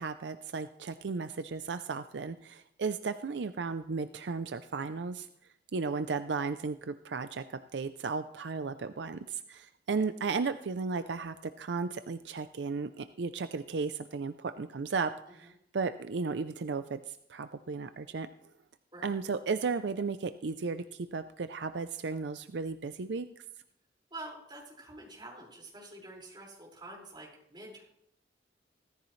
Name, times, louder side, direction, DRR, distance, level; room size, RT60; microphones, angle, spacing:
voice 1, 0.0-5.3 5.7-18.3 19.0-23.3, right 4 dB, 75° right, 11 dB, 0.5 m, -35 dB
voice 2, 18.9-19.2 24.1-27.8, right 2 dB, 25° right, -3 dB, 5.2 m, -47 dB
16.5 x 14.5 x 3.2 m, 0.77 s
head